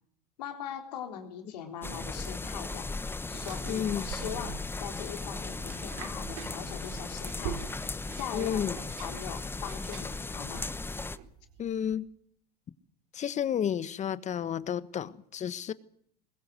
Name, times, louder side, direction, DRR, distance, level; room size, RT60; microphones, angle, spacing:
voice 1, 0.4-2.9 3.3-7.6 8.2-10.7, left 9 dB, 85° left, 3.8 m, -41 dB
sound 1, 1.8-11.2, left 3 dB, 10° left, 0.9 m, -37 dB
sound 2, 3.3-12.0, right 10 dB, 70° right, 2.9 m, -45 dB
voice 2, 3.7-4.1 8.3-8.8 11.6-12.1 13.1-15.7, left 9 dB, 35° left, 1.3 m, -31 dB
21.5 x 20.5 x 7.9 m
supercardioid pair, 95°, 20 cm